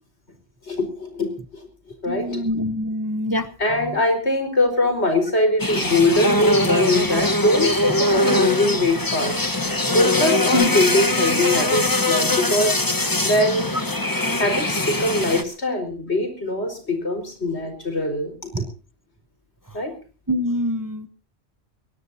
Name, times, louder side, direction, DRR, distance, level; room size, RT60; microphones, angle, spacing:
voice 1, 0.7-1.7 2.0-2.4 3.6-9.4 9.9-12.8 13.2-13.8 14.4-18.5 19.7-19.9, left 1 dB, 85° left, 5 dB, 4.9 m, -22 dB
voice 2, 2.1-3.5 10.5-10.7 18.5-18.6 20.3-21.1, equal, 20° right, 12 dB, 0.8 m, -24 dB
sound 1, 5.6-15.4, left 1 dB, 20° left, 1.2 m, -22 dB
22.5 x 19.5 x 2.8 m, 0.34 s
omnidirectional pair, 1.1 m